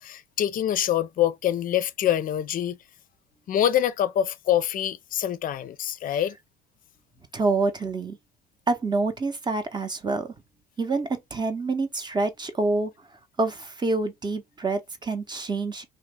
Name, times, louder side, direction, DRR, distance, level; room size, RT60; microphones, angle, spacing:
voice 1, 0.0-2.8 3.5-6.3, left 11 dB, 45° left, 0.5 m, -25 dB
voice 2, 7.3-8.2 8.7-10.3 10.8-12.9 13.4-15.8, right 3 dB, 20° right, 0.6 m, -27 dB
2.8 x 2.0 x 3.3 m
hypercardioid pair, 70°, 20 cm